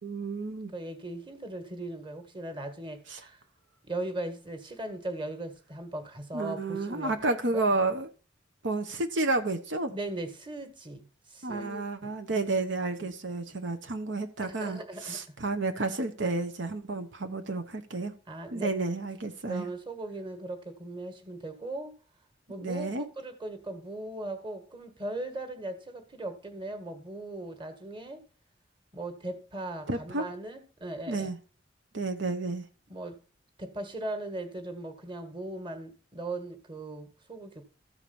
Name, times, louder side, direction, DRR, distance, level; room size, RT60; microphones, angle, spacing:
voice 1, 0.0-0.7 3.1-3.2 6.3-8.1 8.6-9.9 11.4-18.1 18.5-19.7 22.6-23.1 29.9-30.3 31.1-31.4 31.9-32.6, right 3 dB, 80° right, 1.1 m, -31 dB
voice 2, 0.7-3.4 3.8-7.6 9.9-11.0 11.3-12.1 13.0-13.1 13.5-13.6 14.4-15.2 18.3-18.7 19.4-21.9 22.5-28.2 28.9-31.3 32.9-33.2 33.6-37.6, right 2 dB, 25° right, 1.7 m, -38 dB
14.0 x 4.9 x 7.0 m
head